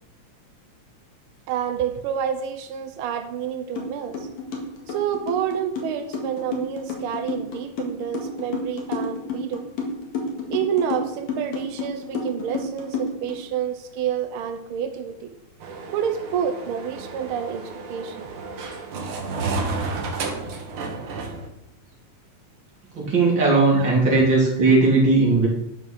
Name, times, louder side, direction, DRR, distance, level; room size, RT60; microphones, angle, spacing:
voice 1, 1.5-4.3 4.9-9.7 10.5-15.3 15.9-18.3 23.7-24.0, right 8 dB, 75° right, 7 dB, 1.2 m, -28 dB
sound 1, 3.8-3.9 4.1-13.4, left 3 dB, 65° left, 3.0 m, -30 dB
sound 2, 15.6-21.5, right 3 dB, 55° right, 1.9 m, -31 dB
voice 2, 23.0-25.5, right 3 dB, 40° right, -3 dB, 3.6 m, -18 dB
11.5 x 5.8 x 6.4 m, 0.80 s
omnidirectional pair, 3.5 m